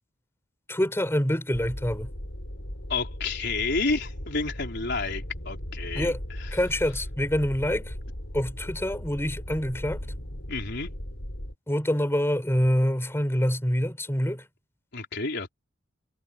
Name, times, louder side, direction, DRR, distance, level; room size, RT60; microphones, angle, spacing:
voice 1, 0.7-2.1 5.9-6.2 6.5-7.9 8.3-10.0 11.7-14.4, equal, 15° left, 5.1 m, -26 dB
sound 1, 1.5-11.5, equal, 80° left, 4.7 m, -37 dB
voice 2, 2.9-6.1 6.4-6.5 10.5-10.9 14.9-15.5, left 3 dB, 60° left, 4.1 m, -30 dB
head